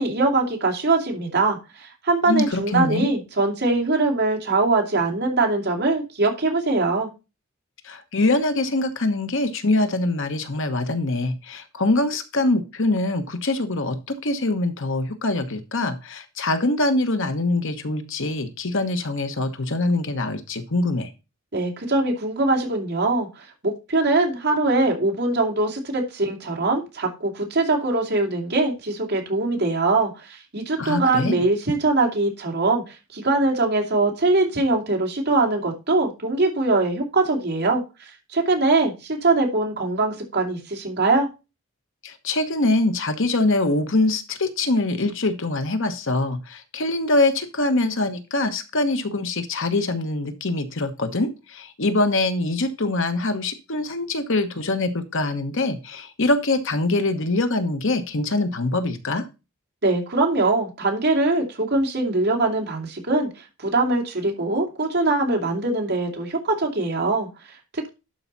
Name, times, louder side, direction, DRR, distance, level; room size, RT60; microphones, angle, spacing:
voice 1, 0.0-7.1 21.5-41.3 59.8-63.3 63.6-67.9, right 2 dB, 55° right, 2 dB, 2.8 m, -22 dB
voice 2, 2.3-3.1 7.8-21.1 30.8-31.4 42.0-59.3, left 2 dB, 65° left, 8 dB, 1.3 m, -24 dB
12.0 x 4.9 x 4.1 m, 0.28 s
head